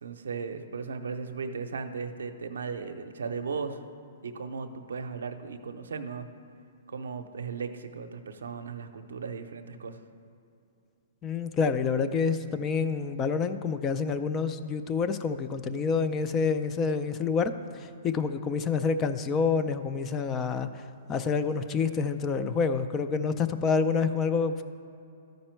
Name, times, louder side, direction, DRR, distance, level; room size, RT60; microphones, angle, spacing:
voice 1, 0.0-3.8 4.2-6.3 6.9-10.0, right 5 dB, 90° right, 8 dB, 0.6 m, -36 dB
voice 2, 11.2-20.8 21.1-24.6, left 5 dB, 25° left, 10 dB, 0.4 m, -28 dB
13.0 x 5.2 x 4.5 m, 2.7 s
hypercardioid pair, 140°, 0 cm